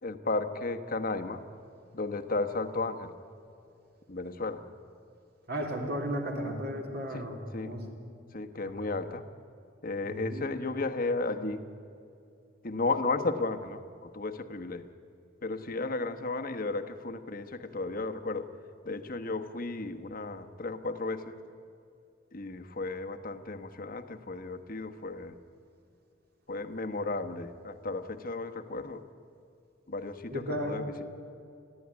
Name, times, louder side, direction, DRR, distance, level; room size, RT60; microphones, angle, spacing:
voice 1, 0.0-1.4 1.9-3.1 4.1-4.6 7.1-7.3 7.5-7.7 8.3-9.2 9.8-11.6 12.6-14.9 15.4-18.5 18.8-21.3 22.3-25.4 26.5-29.0 29.9-31.0, left 3 dB, 45° left, 7 dB, 1.1 m, -34 dB
voice 2, 5.5-7.8 8.8-8.9 10.0-10.4 30.3-30.8, equal, 50° right, 1 dB, 3.3 m, -34 dB
29.0 x 11.0 x 9.8 m, 2.5 s
head